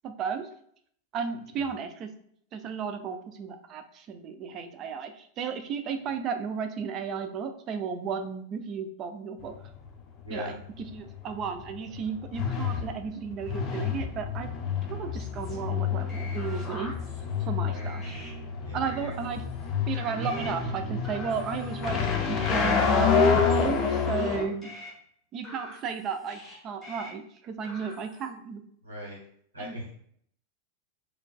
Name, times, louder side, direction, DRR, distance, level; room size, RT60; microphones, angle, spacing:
voice 1, 0.0-0.5 1.1-2.1 2.5-9.5 10.3-10.5 10.9-14.5 14.9-16.9 17.4-18.2 18.7-19.4 19.9-24.7 25.3-28.6 29.6-29.7, right 6 dB, 35° right, 8 dB, 0.3 m, -34 dB
sound 1, 9.4-24.4, left 5 dB, 30° left, 0.5 m, -28 dB
voice 2, 10.2-10.5 17.6-17.9 18.6-19.0 28.8-29.2 29.5-29.9, left 1 dB, 75° right, -5 dB, 1.1 m, -39 dB
sound 2, 15.1-17.5 17.7-18.3 18.8-19.7 19.9-20.5 21.0-22.7 23.2-24.3 24.6-24.9 25.4-26.5 26.8-27.1 27.6-28.3, left 1 dB, 10° left, 1.4 m, -46 dB
4.4 x 2.2 x 2.3 m, 0.66 s
figure-of-eight pair, 90°, 0 cm